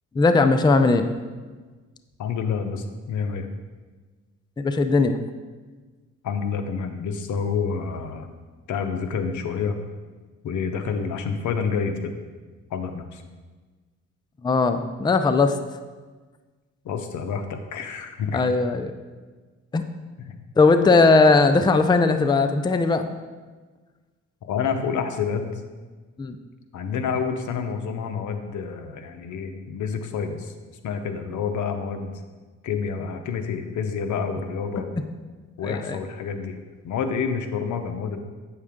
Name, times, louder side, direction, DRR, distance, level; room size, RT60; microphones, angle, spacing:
voice 1, 0.1-1.1 4.6-5.2 14.4-15.6 18.3-18.9 19.7-19.8 20.6-23.1 26.2-26.4 35.6-36.0, left 3 dB, 15° left, 9 dB, 0.4 m, -19 dB
voice 2, 2.2-3.5 6.2-8.3 8.7-9.8 10.4-12.1 12.7-13.2 16.8-18.4 20.3-20.4 24.4-25.6 26.7-30.5 30.8-32.2 32.6-35.0 35.6-36.6 36.8-38.2, left 6 dB, 75° left, 7 dB, 0.9 m, -28 dB
8.3 x 6.5 x 3.6 m, 1.4 s
cardioid pair, 90°, 30 cm